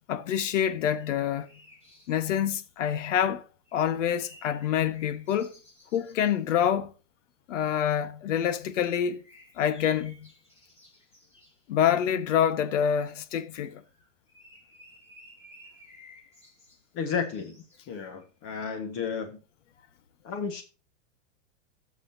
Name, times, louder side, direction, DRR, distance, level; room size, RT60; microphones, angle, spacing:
voice 1, 0.1-1.5 2.1-3.4 3.7-5.5 5.9-6.9 7.5-9.2 9.6-10.3 11.7-13.8, left 9 dB, 75° left, 1.3 m, -26 dB
sound 1, 0.6-2.8 3.7-6.4 8.6-11.6 13.8-18.4, left 1 dB, 15° left, 4.9 m, -56 dB
voice 2, 16.9-19.4 20.2-20.6, left 6 dB, 35° left, 1.4 m, -33 dB
16.0 x 6.3 x 2.7 m
supercardioid pair, 145°, 38 cm